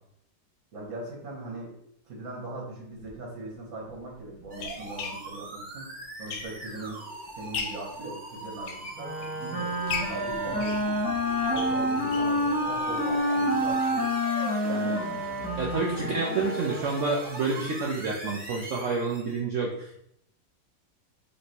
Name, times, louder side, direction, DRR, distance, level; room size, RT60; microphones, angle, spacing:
voice 1, 0.7-1.7 2.0-7.0 7.4-9.8 10.1-11.0 11.5-14.1 14.6-15.0 16.0-16.2, right 2 dB, 50° right, -2 dB, 1.4 m, -40 dB
sound 1, 3.0-3.1 3.9-6.9 7.3-7.9 8.5-9.4 9.9-12.4 12.8-12.9 13.2-13.3 13.6-13.7, left 5 dB, 90° left, 1.3 m, -37 dB
sound 2, 4.5-19.4, right 2 dB, 25° right, 1.3 m, -40 dB
Wind instrument woodwind instrument, 9.0-17.0, equal, 10° right, 0.5 m, -28 dB
voice 2, 15.6-20.0, right 4 dB, 85° right, -1 dB, 0.6 m, -29 dB
3.2 x 3.1 x 4.1 m, 0.74 s
omnidirectional pair, 2.0 m